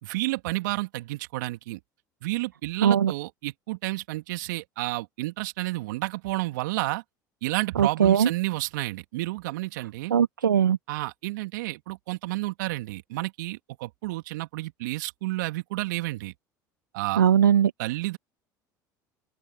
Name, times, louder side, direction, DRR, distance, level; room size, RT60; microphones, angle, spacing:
voice 1, 0.0-1.8 2.2-7.0 7.4-10.1 10.9-16.3 16.9-17.2 17.8-18.2, right 20 dB, 70° right, 2.8 m, -31 dB
voice 2, 2.8-3.1 7.8-8.3 10.1-10.8 17.2-17.7, right 8 dB, 85° right, 1.2 m, -20 dB
open air
hypercardioid pair, 70°, 10 cm